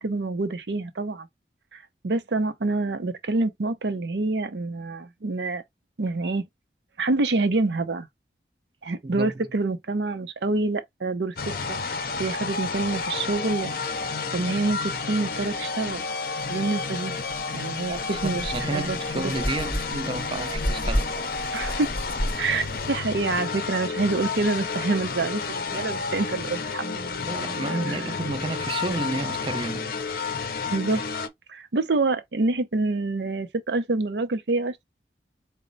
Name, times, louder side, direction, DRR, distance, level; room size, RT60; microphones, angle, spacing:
voice 1, 0.0-1.3 1.7-5.6 6.0-6.4 7.0-8.1 8.8-11.3 11.7-16.0 16.5-17.1 17.5-19.3 21.5-21.9 22.3-27.3 30.7-31.0 31.5-34.8, right 3 dB, 80° right, 0.6 m, -27 dB
voice 2, 9.0-9.3 17.9-21.2 27.2-30.0, right 2 dB, 30° right, 0.5 m, -31 dB
sound 1, 11.4-31.3, left 4 dB, 55° left, 0.6 m, -31 dB
sound 2, 17.3-17.4 17.9-22.9, equal, 10° left, 0.7 m, -31 dB
4.1 x 2.1 x 3.8 m
head